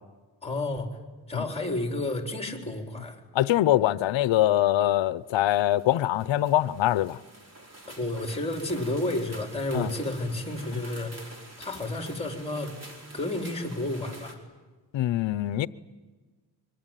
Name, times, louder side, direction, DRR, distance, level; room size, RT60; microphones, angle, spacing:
voice 1, 0.4-0.9 1.3-3.2 7.9-12.7 13.1-14.4, left 2 dB, 15° left, 4.1 m, -31 dB
voice 2, 3.3-7.2 9.7-9.9 14.9-15.7, left 13 dB, 90° left, 0.8 m, -23 dB
sound 1, 4.9-5.0 5.5-14.3, right 1 dB, 35° right, 4.7 m, -47 dB
25.0 x 24.0 x 9.2 m
cardioid pair, 115°, 44 cm